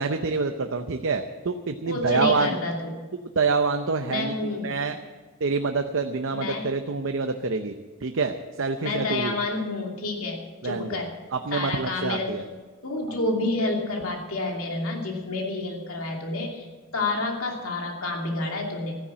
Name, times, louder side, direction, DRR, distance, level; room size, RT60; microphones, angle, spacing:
voice 1, 0.0-2.6 3.4-4.3 4.6-5.0 5.4-7.7 8.0-9.4 10.6-11.0 11.3-12.4, right 4 dB, 65° right, 6 dB, 0.7 m, -26 dB
voice 2, 1.9-2.9 4.1-4.7 6.3-6.7 8.8-10.4 10.6-11.1 11.5-12.4 12.8-16.6 16.9-19.0, left 2 dB, 75° left, 1 dB, 2.7 m, -29 dB
14.0 x 10.0 x 7.4 m, 1.4 s
head